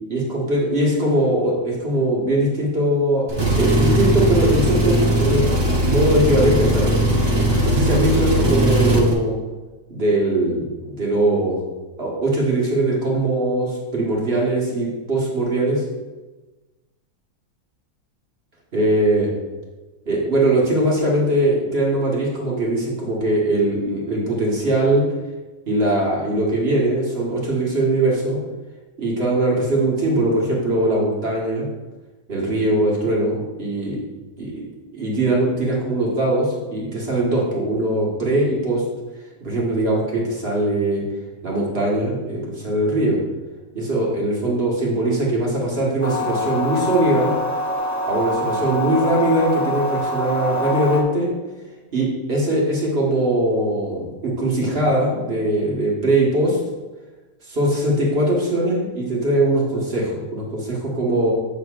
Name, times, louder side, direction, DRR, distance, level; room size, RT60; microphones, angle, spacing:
voice 1, 0.1-6.9 7.6-9.3 9.9-11.6 12.0-15.8 18.7-19.3 20.0-25.0 25.7-28.4 29.0-31.7 32.3-34.0 34.4-34.6 34.9-38.8 39.4-41.0 41.4-43.2 43.7-47.3 48.1-51.3 51.9-56.6 57.5-61.3, right 1 dB, 45° right, -4 dB, 1.7 m, -21 dB
Engine, 3.3-9.1, right 1 dB, 25° right, 0.6 m, -19 dB
sound 1, 46.0-51.0, left 2 dB, 15° left, 1.0 m, -25 dB
8.3 x 6.4 x 2.5 m, 1.2 s
omnidirectional pair, 1.5 m